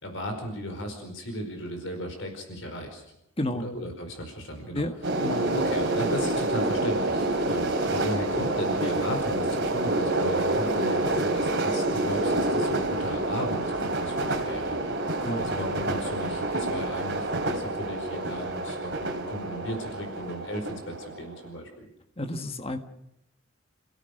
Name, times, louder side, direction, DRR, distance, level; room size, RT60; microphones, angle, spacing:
voice 1, 0.0-3.0 3.6-4.8 5.5-14.8 15.2-21.9, equal, 60° left, 4 dB, 4.9 m, -36 dB
voice 2, 3.4-3.7 4.7-5.0 5.2-5.5 15.2-15.5 22.2-22.8, left 1 dB, 25° left, 6 dB, 1.6 m, -31 dB
sound 1, 5.0-21.5, right 2 dB, 55° right, 3.0 m, -28 dB
29.5 x 17.0 x 6.6 m, 0.84 s
head